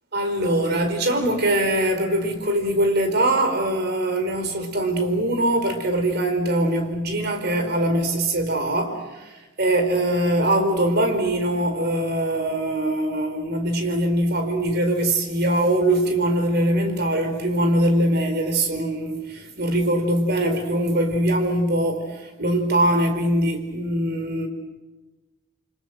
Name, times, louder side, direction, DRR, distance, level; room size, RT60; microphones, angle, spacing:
voice 1, 0.1-24.5, right 1 dB, 55° right, 6 dB, 4.7 m, -22 dB
29.5 x 25.0 x 7.8 m, 1.2 s
head